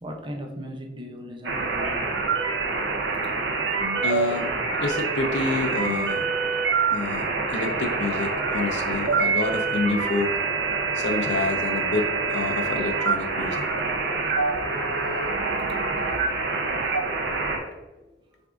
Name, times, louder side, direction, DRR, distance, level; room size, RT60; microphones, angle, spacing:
voice 1, 0.0-2.2 14.8-14.9 18.1-18.2, equal, 30° right, 3 dB, 0.5 m, -38 dB
sound 1, 1.4-17.6, right 4 dB, 75° right, 0.7 m, -26 dB
voice 2, 4.0-4.5 4.8-6.3 6.9-10.4 10.9-13.6, left 3 dB, 75° left, 4 dB, 0.6 m, -28 dB
5.9 x 2.6 x 2.4 m, 1.1 s
head